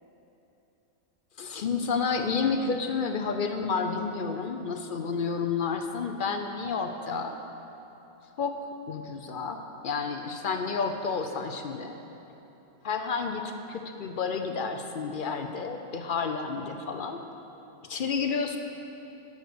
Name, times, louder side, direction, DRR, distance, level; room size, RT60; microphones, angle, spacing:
voice 1, 1.4-7.4 8.4-8.6 8.9-11.9 12.8-17.2 17.9-18.6, left 5 dB, 60° left, 6 dB, 0.5 m, -30 dB
11.0 x 6.5 x 6.8 m, 3.0 s
omnidirectional pair, 1.5 m